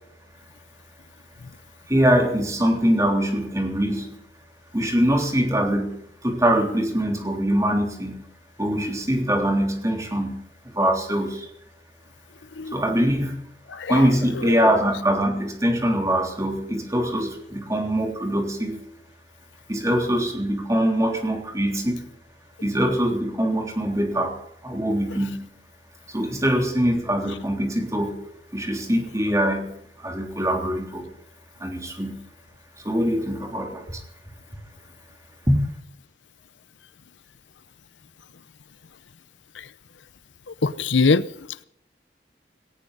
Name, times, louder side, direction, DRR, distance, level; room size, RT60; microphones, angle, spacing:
voice 1, 1.9-4.1 4.7-8.2 8.6-10.5 10.7-11.5 12.7-13.4 13.9-18.8 19.7-22.1 22.6-25.5 26.1-28.2 28.5-31.1 31.6-32.1 32.8-34.0 35.5-35.6, equal, 15° right, 3.4 m, -23 dB
voice 2, 40.6-41.2, left 4 dB, 85° left, 0.8 m, -21 dB
18.5 x 18.0 x 4.1 m
head